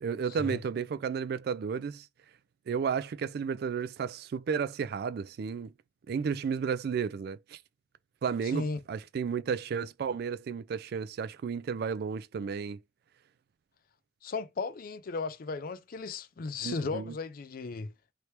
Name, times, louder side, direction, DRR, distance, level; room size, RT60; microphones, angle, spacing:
voice 1, 0.0-2.1 2.7-5.7 6.1-7.6 8.2-12.8 16.6-17.1, right 6 dB, 55° right, 0.3 m, -33 dB
voice 2, 8.5-8.8 14.2-17.9, left 4 dB, 50° left, 0.4 m, -35 dB
3.2 x 2.9 x 3.0 m
head